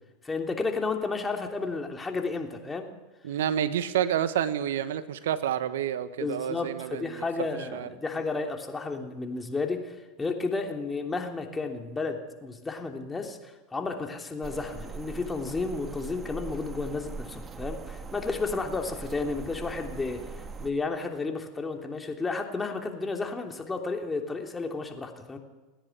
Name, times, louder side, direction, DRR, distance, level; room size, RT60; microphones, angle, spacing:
voice 1, 0.2-2.9 6.2-20.2 20.6-25.4, left 3 dB, 15° left, 3 dB, 3.2 m, -32 dB
voice 2, 3.2-7.2 7.7-7.9, right 10 dB, 75° right, 13 dB, 1.1 m, -29 dB
sound 1, 14.4-20.7, right 4 dB, 25° right, 1.5 m, -41 dB
29.0 x 10.5 x 9.4 m, 1.2 s
hypercardioid pair, 95°, 0 cm